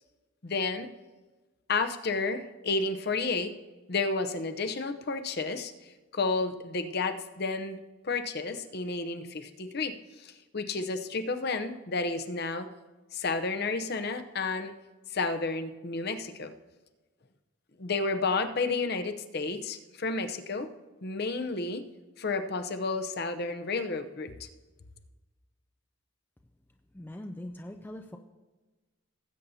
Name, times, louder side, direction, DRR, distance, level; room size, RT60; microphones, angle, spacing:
voice 1, 0.4-0.9 1.7-3.5 3.9-5.7 6.1-7.8 8.0-12.7 13.1-14.7 15.1-16.5 17.8-20.7 21.0-21.8 22.2-24.5, left 3 dB, 45° left, 8 dB, 0.7 m, -31 dB
voice 2, 26.9-28.2, left 1 dB, 10° left, 4 dB, 0.4 m, -41 dB
18.5 x 8.3 x 2.7 m, 1.2 s
head